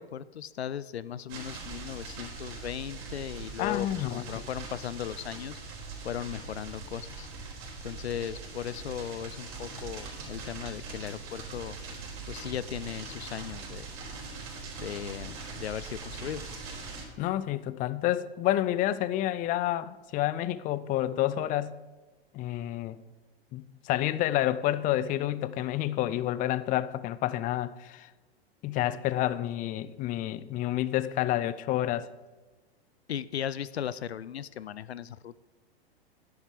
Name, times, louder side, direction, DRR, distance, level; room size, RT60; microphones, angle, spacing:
voice 1, 0.0-5.6 6.0-7.3 7.8-11.8 12.3-13.9 14.8-16.4 33.1-35.3, left 9 dB, 90° left, 0.5 m, -37 dB
sound 1, 1.3-17.0, right 4 dB, 45° right, 4.1 m, -42 dB
voice 2, 3.6-4.4 17.2-21.8 22.3-23.0 23.5-28.1 28.6-32.1, left 13 dB, 25° left, 0.5 m, -29 dB
10.0 x 9.4 x 5.0 m
hypercardioid pair, 105°, 31 cm